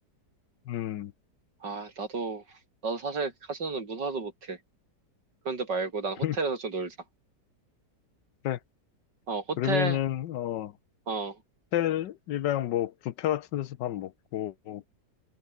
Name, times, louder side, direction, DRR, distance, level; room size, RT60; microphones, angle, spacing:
voice 1, 0.7-1.1 6.2-6.4 8.4-8.6 9.6-10.7 11.7-14.8, left 12 dB, 85° left, 1.5 m, -30 dB
voice 2, 1.6-4.6 5.4-7.0 9.3-10.0 11.1-11.4, right 4 dB, 75° right, 4.3 m, -32 dB
omnidirectional pair, 1.9 m